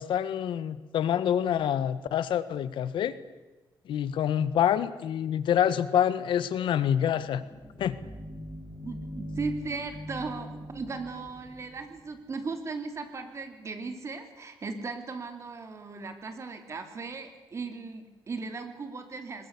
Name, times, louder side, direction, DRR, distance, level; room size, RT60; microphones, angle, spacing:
voice 1, 0.0-3.2 3.8-7.4 7.8-8.0, left 9 dB, 85° left, 14 dB, 1.3 m, -26 dB
sound 1, 7.1-12.4, equal, 5° left, 4.7 m, -42 dB
voice 2, 8.8-19.5, right 4 dB, 35° right, 7 dB, 3.0 m, -37 dB
21.5 x 20.5 x 8.3 m, 1.1 s
cardioid pair, 145°, 8 cm